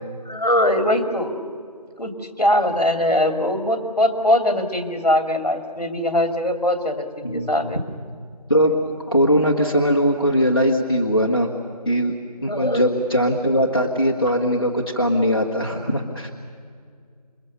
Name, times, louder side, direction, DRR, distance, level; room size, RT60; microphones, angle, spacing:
voice 1, 0.3-1.3 2.0-2.1 2.4-7.8 12.5-12.8, left 1 dB, 65° left, 6 dB, 2.8 m, -21 dB
voice 2, 7.2-7.7 8.5-11.5 11.8-12.2 12.4-16.3, equal, 35° left, -1 dB, 1.6 m, -20 dB
28.0 x 22.5 x 6.9 m, 2.1 s
figure-of-eight pair, 175°, 21 cm